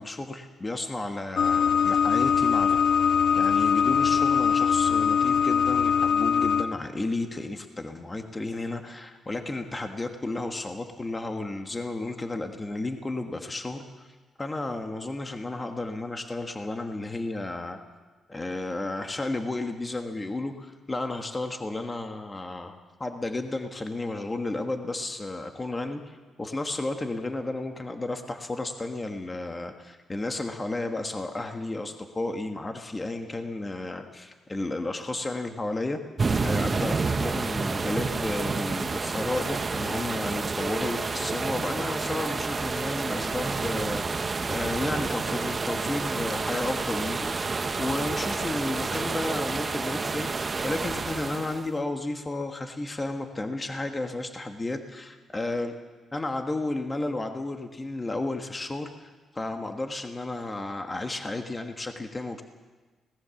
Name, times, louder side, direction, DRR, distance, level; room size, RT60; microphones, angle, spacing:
voice 1, 0.0-2.8 3.3-17.8 18.3-36.0 36.4-47.3 47.8-55.7 56.1-62.4, left 2 dB, 20° left, 5 dB, 1.4 m, -33 dB
sound 1, 1.4-6.6, left 7 dB, 60° left, 1.1 m, -22 dB
sound 2, 36.2-51.7, right 4 dB, 30° right, 0.9 m, -29 dB
25.0 x 18.0 x 7.1 m, 1.3 s
cardioid pair, 115°, 0 cm